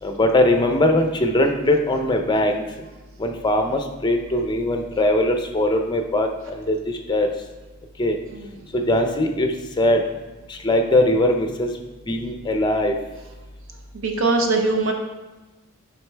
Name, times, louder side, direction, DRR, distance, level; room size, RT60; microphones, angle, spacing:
voice 1, 0.0-2.6 3.2-7.3 8.0-8.2 8.7-10.0 10.5-11.7 12.1-12.9, left 1 dB, 20° left, 5 dB, 0.5 m, -21 dB
voice 2, 8.3-8.7 13.9-14.9, right 3 dB, 60° right, 3 dB, 0.8 m, -22 dB
7.7 x 5.1 x 3.3 m, 1.2 s
head